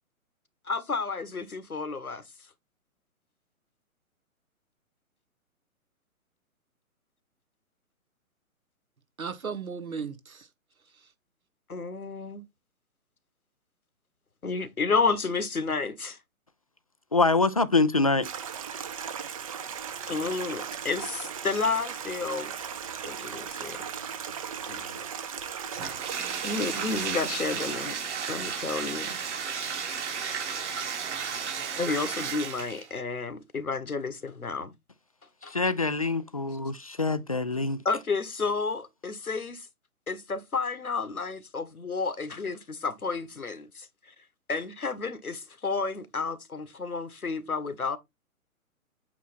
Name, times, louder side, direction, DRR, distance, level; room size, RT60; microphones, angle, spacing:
voice 1, 0.7-2.2 11.7-12.4 14.4-16.2 20.1-22.7 23.0-23.8 24.7-25.0 26.4-28.0 28.3-29.2 31.7-34.7 35.4-35.6 37.8-39.7 40.1-44.1 44.5-48.0, left 4 dB, 80° left, 1.5 m, -31 dB
voice 2, 9.2-10.5 10.9-11.1, right 6 dB, 75° right, 1.4 m, -36 dB
voice 3, 17.1-18.3 35.5-37.8, left 3 dB, 25° left, 0.4 m, -25 dB
Stream, 18.2-27.9, right 8 dB, 25° right, 0.7 m, -37 dB
Bathtub (filling or washing), 25.7-32.9, right 6 dB, 50° right, 3.0 m, -33 dB
8.5 x 4.3 x 4.2 m
figure-of-eight pair, 130°, 43 cm